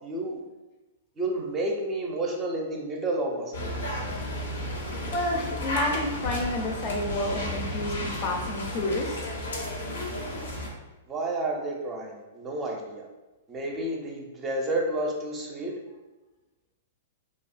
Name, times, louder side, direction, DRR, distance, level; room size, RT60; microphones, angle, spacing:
voice 1, 0.0-0.4 1.2-3.7 11.1-13.1 13.5-15.7, right 2 dB, 25° right, 0 dB, 0.5 m, -30 dB
sound 1, 3.5-10.7, left 1 dB, 85° left, 0.6 m, -33 dB
voice 2, 5.1-9.2, left 1 dB, 40° left, 1 dB, 0.5 m, -30 dB
2.6 x 2.3 x 2.5 m, 1.1 s
hypercardioid pair, 120°, 0 cm